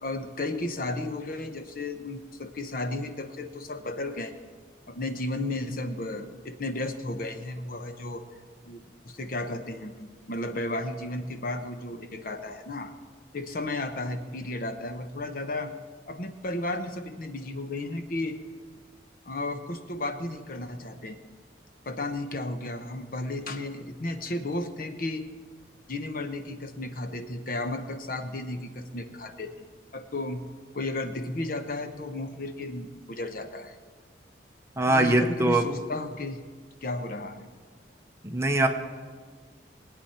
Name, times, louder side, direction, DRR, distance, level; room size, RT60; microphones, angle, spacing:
voice 1, 0.0-4.3 4.9-8.2 8.6-12.9 13.3-15.7 16.1-18.4 19.2-21.2 21.9-25.3 25.9-30.5 30.7-33.8 34.9-36.4 36.8-37.5, left 2 dB, 50° left, 7 dB, 0.9 m, -34 dB
voice 2, 34.8-35.6 38.2-38.7, right 2 dB, 15° right, 4 dB, 0.8 m, -22 dB
21.0 x 9.0 x 4.4 m, 1.5 s
head